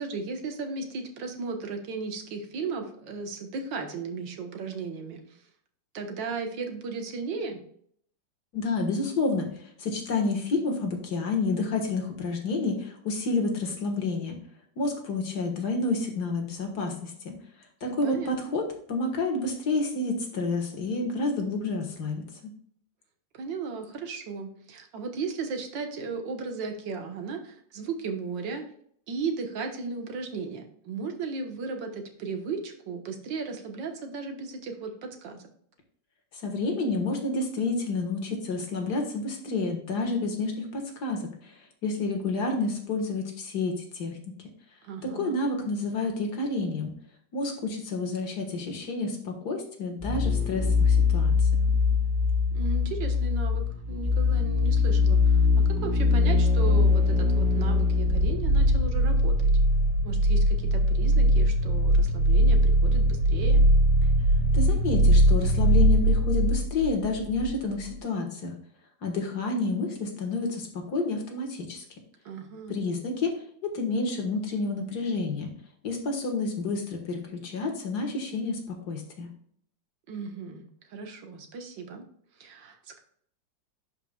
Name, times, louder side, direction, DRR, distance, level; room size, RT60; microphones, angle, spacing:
voice 1, 0.0-5.2 5.9-7.6 17.8-18.6 23.3-28.6 29.1-35.4 44.8-45.4 52.5-59.5 60.0-63.6 72.3-72.8 80.1-82.0 82.4-83.0, right 4 dB, 80° right, 5 dB, 1.8 m, -35 dB
voice 2, 8.5-9.5 9.8-14.4 14.8-17.3 17.8-18.6 18.9-22.2 36.3-41.5 41.8-44.1 45.1-46.9 47.3-51.3 64.5-68.5 69.0-71.8 72.7-73.3 73.7-75.5 75.8-79.3, left 3 dB, 60° left, 2 dB, 2.0 m, -29 dB
sound 1, 50.0-67.5 67.8-67.9, left 1 dB, 5° right, 2.7 m, -22 dB
11.0 x 5.1 x 2.3 m, 0.63 s
omnidirectional pair, 2.0 m